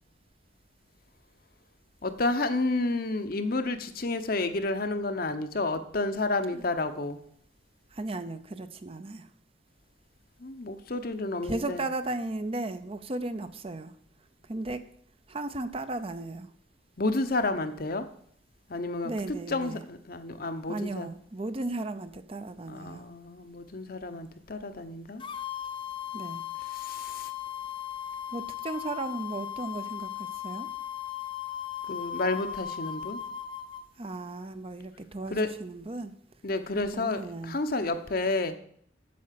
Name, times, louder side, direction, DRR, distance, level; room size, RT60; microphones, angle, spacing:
voice 1, 2.0-7.2 10.4-11.8 17.0-18.1 18.7-19.1 19.5-21.1 22.7-25.2 26.7-27.3 31.9-33.2 35.3-35.5 36.4-38.5, left 2 dB, 50° left, 9 dB, 0.9 m, -30 dB
voice 2, 7.9-9.3 11.4-13.9 14.5-14.8 15.3-16.5 19.0-19.8 20.7-23.1 26.1-26.4 28.3-30.7 34.0-36.1 36.9-37.6, right 2 dB, 30° right, 10 dB, 0.6 m, -35 dB
sound 1, 25.2-33.8, left 10 dB, 25° left, 0.5 m, -37 dB
8.5 x 7.6 x 7.5 m, 0.64 s
head